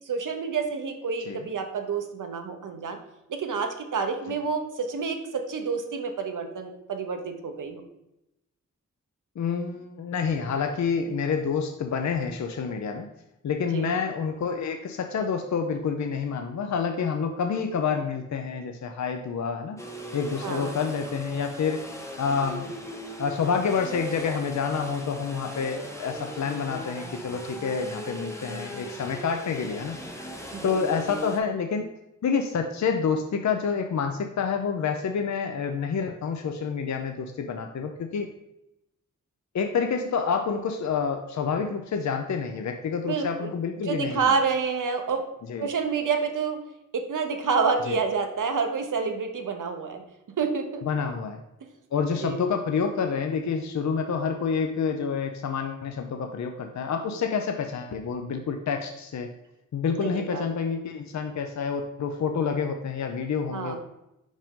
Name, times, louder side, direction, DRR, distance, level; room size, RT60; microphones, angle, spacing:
voice 1, 0.1-3.0 3.3-7.8 13.7-14.0 20.4-20.7 30.5-30.9 43.1-43.5 43.8-45.2 45.6-46.6 46.9-50.0 50.4-50.8 52.2-52.4 60.0-60.5 63.5-63.8, right 5 dB, 90° right, 5 dB, 0.8 m, -28 dB
voice 2, 9.4-13.1 13.4-21.8 22.2-22.7 23.2-30.0 30.6-31.9 32.2-38.3 39.5-44.4 45.5-45.7 47.9-48.0 50.8-51.4 51.9-59.3 59.7-63.8, left 6 dB, 65° left, 5 dB, 0.5 m, -28 dB
sound 1, 19.8-31.4, equal, 10° left, 0.7 m, -38 dB
5.2 x 5.1 x 3.6 m, 0.88 s
wide cardioid pair, 125°, 30 cm